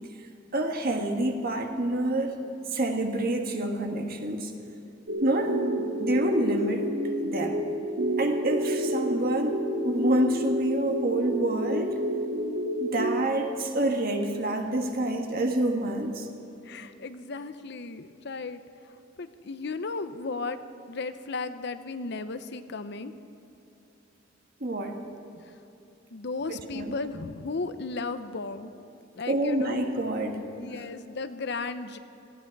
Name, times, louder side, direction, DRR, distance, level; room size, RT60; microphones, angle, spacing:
voice 1, 0.5-2.4 2.7-4.5 5.2-6.9 7.2-7.7 8.2-9.6 9.8-12.0 12.8-16.3 24.6-25.0 26.5-26.9 29.3-30.4, right 1 dB, 50° right, 3 dB, 1.6 m, -27 dB
sound 1, 5.1-13.3, right 1 dB, 70° right, 1.4 m, -29 dB
voice 2, 16.6-18.6 19.2-20.6 20.9-23.1 25.4-25.6 26.1-28.7 29.1-29.8 30.6-32.0, left 3 dB, 60° left, 10 dB, 0.7 m, -35 dB
18.5 x 15.0 x 4.7 m, 2.9 s
head